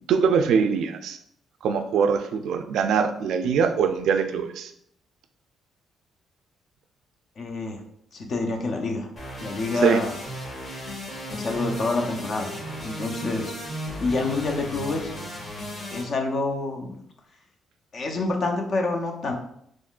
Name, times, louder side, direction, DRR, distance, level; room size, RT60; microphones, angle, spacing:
voice 1, 0.1-1.2 1.6-4.7 9.8-10.0, right 6 dB, 75° right, 7 dB, 0.3 m, -22 dB
voice 2, 7.4-7.8 8.1-9.1 9.4-10.2 11.3-12.6 12.8-13.5 14.0-15.1 15.9-16.9 17.9-19.3, left 3 dB, 50° left, 3 dB, 0.6 m, -27 dB
sound 1, 9.2-16.0, equal, 30° left, 1.4 m, -35 dB
3.6 x 3.1 x 2.4 m, 0.71 s
cardioid pair, 120°, 0 cm